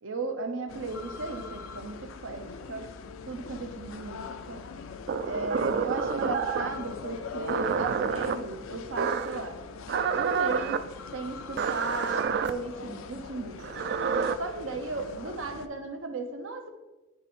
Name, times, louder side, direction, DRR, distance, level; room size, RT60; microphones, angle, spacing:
voice 1, 0.0-2.4 2.7-2.9 3.2-4.6 5.2-9.6 10.1-10.8 11.1-13.7 14.4-16.7, right 3 dB, 75° right, 6 dB, 0.8 m, -36 dB
sound 1, 0.7-15.7, left 5 dB, 90° left, 0.4 m, -42 dB
sound 2, 5.1-6.8 7.5-8.4 9.0-9.4 9.9-10.8 11.6-12.5 13.6-14.3, right 6 dB, 55° right, 0.3 m, -28 dB
9.0 x 3.6 x 4.3 m, 1.2 s
head